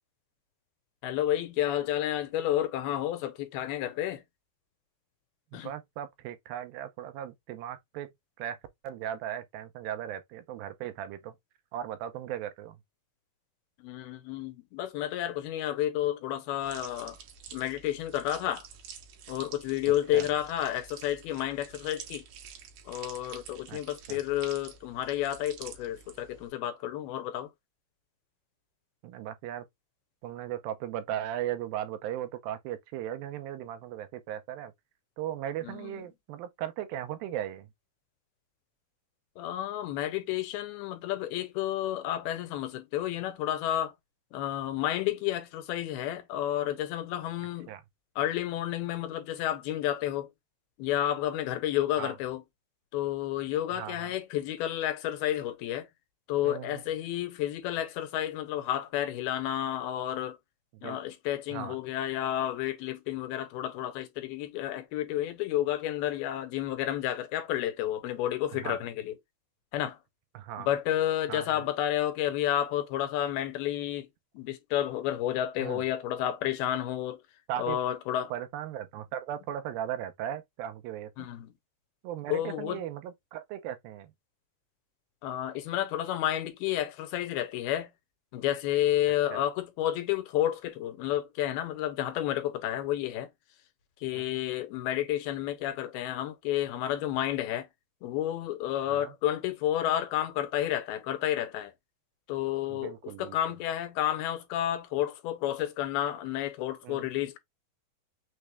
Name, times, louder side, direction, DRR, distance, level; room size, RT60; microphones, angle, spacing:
voice 1, 1.0-4.2 5.5-5.7 13.8-17.2 17.5-18.7 19.3-22.2 22.9-27.5 35.6-36.1 39.4-43.9 44.3-47.7 48.2-50.3 50.8-52.4 52.9-55.9 56.3-60.4 60.8-69.1 69.7-70.0 70.6-74.1 74.3-77.2 77.6-78.3 81.2-81.5 82.3-82.8 85.2-87.9 88.3-93.3 94.0-97.7 98.0-101.7 102.3-107.4, left 12 dB, 90° left, 2.8 m, -31 dB
voice 2, 5.5-8.1 8.4-8.6 8.8-11.4 11.7-12.8 20.1-20.3 23.7-23.8 24.1-24.2 29.0-29.7 30.2-34.7 35.2-37.7 47.7-47.8 52.0-52.2 53.7-54.2 56.4-56.8 60.7-61.0 61.5-61.8 68.5-68.8 70.3-70.7 71.3-71.7 75.6-75.8 77.5-77.8 78.3-81.3 82.0-84.1 89.3-89.4 94.1-94.4 98.9-99.1 102.7-103.4 106.8-107.1, right 11 dB, 90° right, 2.5 m, -37 dB
sound 1, 16.6-26.5, right 8 dB, 75° right, 2.6 m, -48 dB
6.3 x 2.2 x 3.1 m
omnidirectional pair, 4.2 m